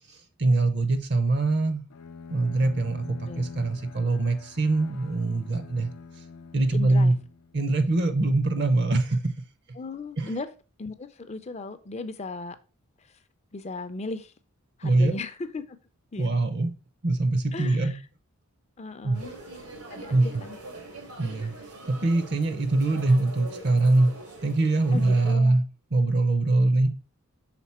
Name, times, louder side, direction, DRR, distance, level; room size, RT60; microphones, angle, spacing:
voice 1, 0.1-1.8 2.3-5.9 6.5-7.1 7.5-9.3 10.2-10.3 14.8-15.1 16.2-16.7 17.0-18.0 19.0-19.2 20.1-20.4 21.2-21.5 21.9-24.1 24.4-25.6 25.9-26.9, right 2 dB, 50° right, 0.6 m, -23 dB
Bowed string instrument, 1.9-7.7, left 4 dB, 85° left, 0.6 m, -45 dB
voice 2, 6.7-7.1 9.8-10.5 10.8-12.6 13.5-14.3 14.8-15.8 16.1-16.3 17.5-18.0 18.8-19.4 19.9-20.6 21.3-21.4 24.9-25.6, left 3 dB, 30° left, 0.4 m, -36 dB
sound 1, 19.1-25.4, right 2 dB, 90° right, 1.8 m, -42 dB
5.9 x 3.9 x 4.2 m
head